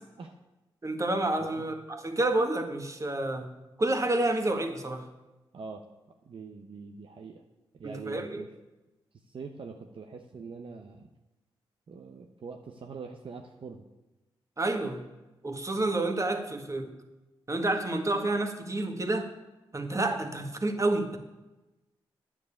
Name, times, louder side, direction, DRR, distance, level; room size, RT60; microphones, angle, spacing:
voice 1, 0.8-3.5 3.8-5.1 7.8-8.4 14.6-15.0 15.4-16.9 17.5-19.3 19.7-21.2, right 2 dB, 30° right, 6 dB, 1.7 m, -29 dB
voice 2, 5.5-5.9 6.2-7.4 7.7-8.5 9.3-11.1 11.9-13.8, right 5 dB, 60° right, 4 dB, 0.9 m, -43 dB
9.3 x 7.5 x 8.6 m, 1.0 s
cardioid pair, 55°, 10 cm